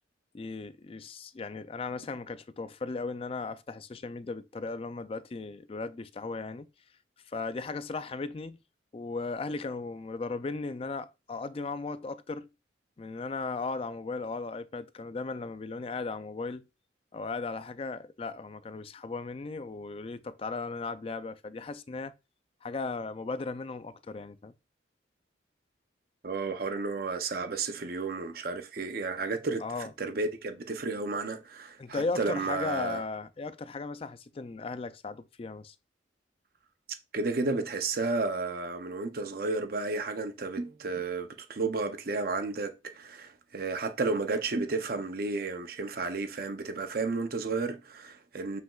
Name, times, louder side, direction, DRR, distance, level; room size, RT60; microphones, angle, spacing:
voice 1, 0.3-6.7 7.2-8.6 8.9-12.5 13.0-16.6 17.1-22.1 22.6-24.5 29.6-29.9 31.8-35.8, left 3 dB, 30° left, 0.3 m, -36 dB
voice 2, 26.2-33.0 37.1-48.6, right 3 dB, 50° right, 0.6 m, -32 dB
7.6 x 5.8 x 2.4 m
head